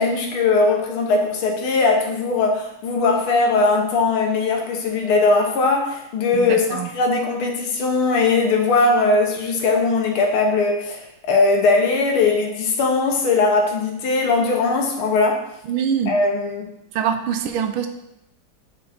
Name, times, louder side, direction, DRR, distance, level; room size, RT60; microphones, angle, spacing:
voice 1, 0.0-15.5 16.1-16.7, left 3 dB, 75° left, 2 dB, 1.8 m, -19 dB
voice 2, 6.3-6.9 15.7-16.2 16.9-17.9, right 8 dB, 75° right, 7 dB, 1.4 m, -24 dB
7.0 x 5.2 x 3.5 m, 0.83 s
omnidirectional pair, 2.4 m